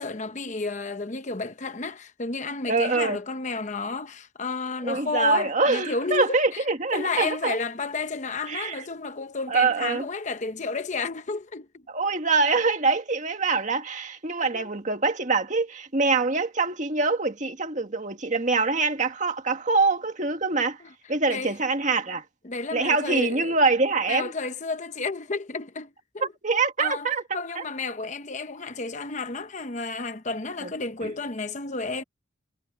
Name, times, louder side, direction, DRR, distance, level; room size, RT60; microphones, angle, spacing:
voice 1, 0.0-6.6 6.9-11.8 14.5-14.7 20.8-20.9 21.3-21.5 22.4-23.6 24.1-25.9 26.1-26.3 26.8-32.0, left 3 dB, 35° left, 0.9 m, -31 dB
voice 2, 2.7-3.2 4.8-7.6 8.5-8.8 9.5-10.1 11.9-20.8 21.1-22.2 22.7-24.3 26.4-27.2 27.6-27.7 31.0-31.1, right 3 dB, 35° right, 2.0 m, -24 dB
head